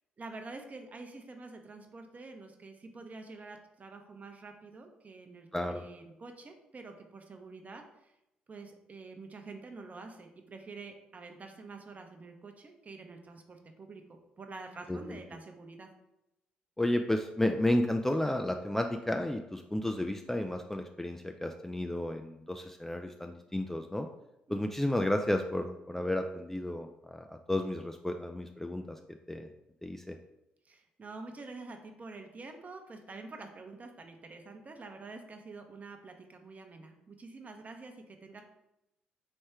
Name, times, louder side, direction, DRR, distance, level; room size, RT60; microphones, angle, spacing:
voice 1, 0.2-8.1 8.5-15.9 24.5-24.6 30.6-38.4, right 3 dB, 35° right, 5 dB, 0.7 m, -47 dB
voice 2, 5.5-5.8 14.9-15.2 16.8-24.1 24.5-29.0 29.3-29.5 29.8-30.2, left 1 dB, 5° left, 5 dB, 0.3 m, -32 dB
3.4 x 3.2 x 4.3 m, 0.87 s
figure-of-eight pair, 45°, 4 cm